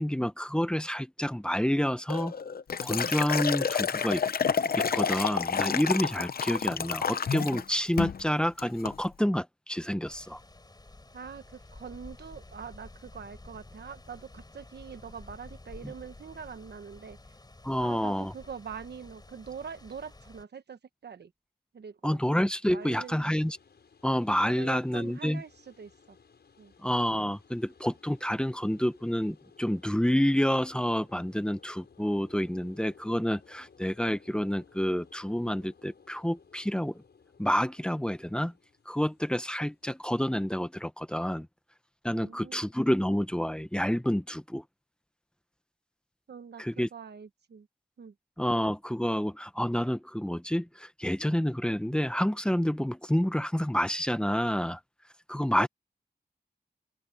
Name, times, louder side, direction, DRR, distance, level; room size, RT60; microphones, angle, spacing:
voice 1, 0.0-2.3 2.8-4.2 4.7-10.4 15.8-15.9 17.6-18.3 22.0-23.6 24.0-25.4 26.8-37.0 37.4-38.5 38.9-41.5 42.0-44.6 46.6-46.9 48.4-54.8 55.3-55.7, equal, 5° left, 0.9 m, -29 dB
Liquid, 2.1-7.6 8.0-8.2 8.6-9.0, left 6 dB, 65° left, 0.7 m, -29 dB
sound 1, 10.0-20.4, left 2 dB, 25° left, 4.3 m, -51 dB
voice 2, 11.1-17.2 17.8-21.3 21.7-22.2 22.7-23.3 24.4-26.2 26.6-26.7 42.1-42.7 46.3-47.7 48.0-48.1 55.6-55.7, right 6 dB, 85° right, 1.2 m, -44 dB
sound 2, 22.8-40.4, left 5 dB, 85° left, 6.1 m, -59 dB
open air
wide cardioid pair, 120°, 17 cm